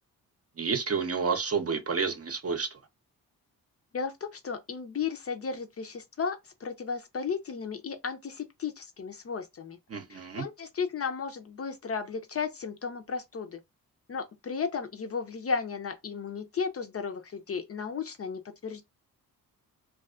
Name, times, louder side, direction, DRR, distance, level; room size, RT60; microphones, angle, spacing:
voice 1, 0.6-2.7 9.9-10.4, right 5 dB, 40° right, 0.7 m, -30 dB
voice 2, 3.9-9.8 10.1-13.6 14.1-18.8, left 5 dB, 40° left, 0.5 m, -34 dB
2.3 x 2.3 x 2.4 m
supercardioid pair, 50°, 38 cm